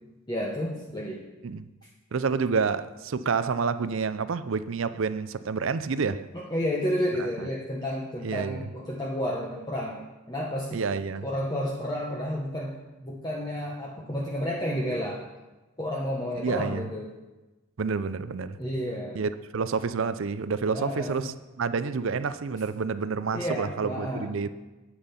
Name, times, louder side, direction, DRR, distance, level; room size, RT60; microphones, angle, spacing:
voice 1, 0.3-1.2 6.3-10.0 10.3-10.8 11.2-12.8 13.0-15.3 15.8-17.1 18.6-19.2 20.7-21.2 23.3-24.3, equal, 20° left, 1.0 m, -31 dB
voice 2, 2.1-6.3 7.4-7.5 8.2-8.7 10.7-11.2 16.4-16.9 17.8-18.6 19.1-24.5, right 5 dB, 60° right, 0.5 m, -29 dB
8.8 x 8.7 x 5.7 m
head